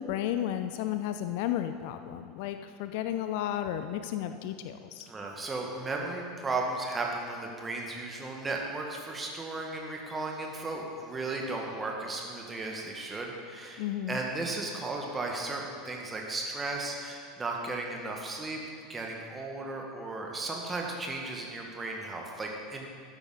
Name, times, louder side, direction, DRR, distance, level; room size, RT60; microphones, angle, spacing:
voice 1, 0.0-5.1 13.8-14.2, left 11 dB, 55° left, 9 dB, 0.5 m, -33 dB
voice 2, 5.1-18.6 18.9-22.9, right 2 dB, 20° right, 0 dB, 1.9 m, -35 dB
13.0 x 9.5 x 4.1 m, 2.2 s
figure-of-eight pair, 75°, 0 cm